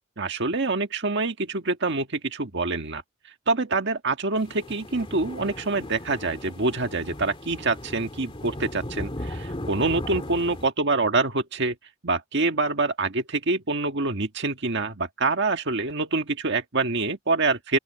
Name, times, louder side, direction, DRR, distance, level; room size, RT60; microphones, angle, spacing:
voice 1, 0.2-3.0 3.5-11.7 12.0-17.8, right 3 dB, 55° right, 1.7 m, -26 dB
sound 1, 4.4-10.7, left 1 dB, 25° left, 2.4 m, -37 dB
open air
head